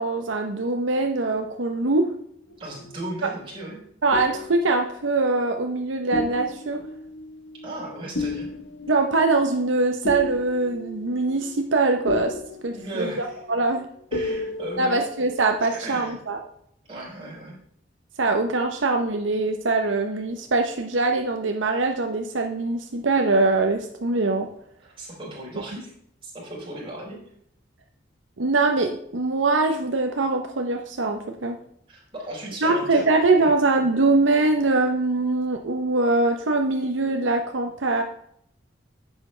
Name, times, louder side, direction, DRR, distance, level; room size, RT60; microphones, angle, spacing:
voice 1, 0.0-2.1 4.0-6.8 8.9-12.4 12.6-13.9 14.8-16.4 18.2-24.5 28.4-31.6 32.6-38.0, right 3 dB, 80° right, 4 dB, 0.9 m, -23 dB
sound 1, 2.5-3.5 4.1-5.8 6.1-15.6, left 1 dB, 75° left, 1.1 m, -35 dB
voice 2, 2.6-3.8 7.6-8.5 12.7-13.4 14.1-15.0 15.6-16.2 16.9-17.6 24.8-25.9 26.2-27.2 31.9-33.1 33.4-33.5, right 1 dB, 30° right, -5 dB, 4.4 m, -36 dB
10.5 x 7.7 x 3.3 m, 0.68 s
head